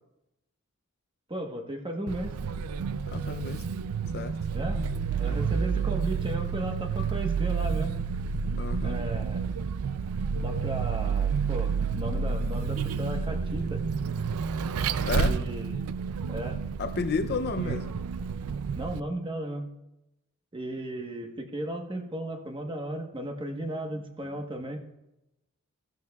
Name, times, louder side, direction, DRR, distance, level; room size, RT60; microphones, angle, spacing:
voice 1, 1.3-2.4 4.5-4.8 5.1-8.0 8.8-9.4 10.4-13.8 15.2-15.9 16.3-16.6 17.5-17.8 18.7-19.7 20.5-24.8, right 1 dB, 25° right, 1.1 m, -35 dB
Vehicle, 2.1-19.0, right 6 dB, 85° right, 0.4 m, -30 dB
voice 2, 3.1-3.6 4.1-4.4 8.6-9.0 14.9-15.4 16.8-17.9, left 4 dB, 50° left, 0.5 m, -31 dB
15.5 x 12.0 x 2.3 m
head